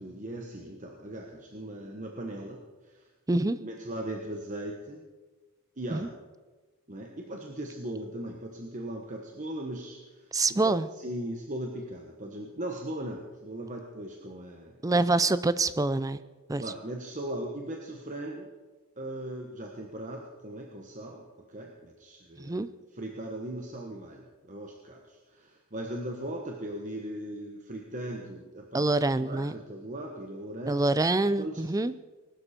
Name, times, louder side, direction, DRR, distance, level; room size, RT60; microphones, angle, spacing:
voice 1, 0.0-2.6 2.8-3.1 3.6-5.0 5.8-6.1 6.9-10.2 10.6-15.0 16.6-18.5 19.0-22.6 22.9-28.9 29.2-30.8 31.4-31.6, right 1 dB, 35° right, 1 dB, 1.3 m, -38 dB
voice 2, 3.3-3.6 5.9-6.1 10.3-10.9 14.8-16.2 16.5-16.6 22.4-22.7 28.7-29.5 30.7-31.9, right 2 dB, 15° right, 15 dB, 0.4 m, -26 dB
20.5 x 12.0 x 4.4 m, 1.2 s
head